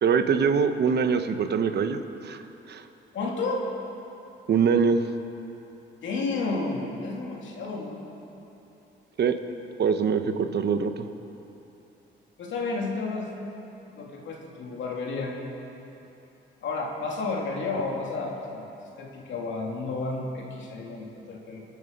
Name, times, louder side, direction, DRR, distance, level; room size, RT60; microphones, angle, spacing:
voice 1, 0.0-2.9 4.5-5.0 9.2-9.4 9.8-11.1, right 6 dB, 55° right, 8 dB, 1.1 m, -24 dB
voice 2, 3.1-3.7 6.0-8.0 12.4-13.3 13.9-15.4 16.6-21.6, left 3 dB, 70° left, -1 dB, 2.9 m, -31 dB
26.0 x 9.6 x 5.4 m, 2.9 s
cardioid pair, 90°, 20 cm